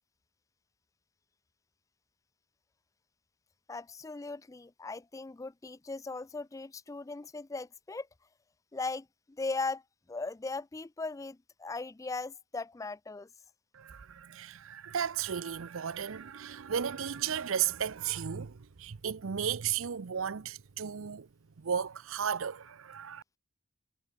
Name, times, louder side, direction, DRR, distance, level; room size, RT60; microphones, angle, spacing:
voice 1, 3.7-8.1 8.7-9.8 10.1-13.3, left 3 dB, 15° left, 0.3 m, -38 dB
voice 2, 13.7-21.3 21.6-23.2, right 8 dB, 70° right, 0.6 m, -34 dB
head